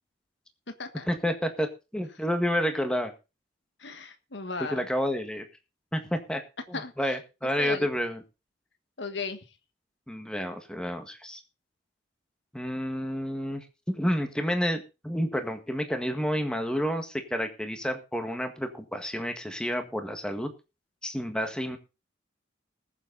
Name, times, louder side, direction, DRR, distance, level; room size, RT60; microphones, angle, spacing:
voice 1, 1.1-1.7 1.9-3.1 4.7-5.4 5.9-6.4 6.7-8.2 10.1-11.4 12.5-13.6 13.9-20.5 21.0-21.8, equal, 5° left, 6 dB, 1.7 m, -30 dB
voice 2, 3.8-4.9 6.7-7.2 7.6-7.9 9.0-9.5, left 4 dB, 70° left, 8 dB, 1.5 m, -36 dB
20.5 x 7.4 x 4.0 m, 0.29 s
head